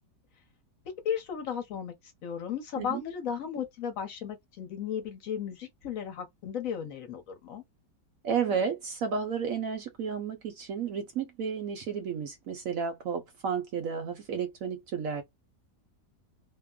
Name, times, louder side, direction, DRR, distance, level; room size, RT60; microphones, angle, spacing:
voice 1, 1.0-7.6, left 8 dB, 60° left, 1.0 m, -35 dB
voice 2, 8.2-15.2, right 6 dB, 65° right, 0.9 m, -32 dB
2.8 x 2.1 x 2.3 m
omnidirectional pair, 1.9 m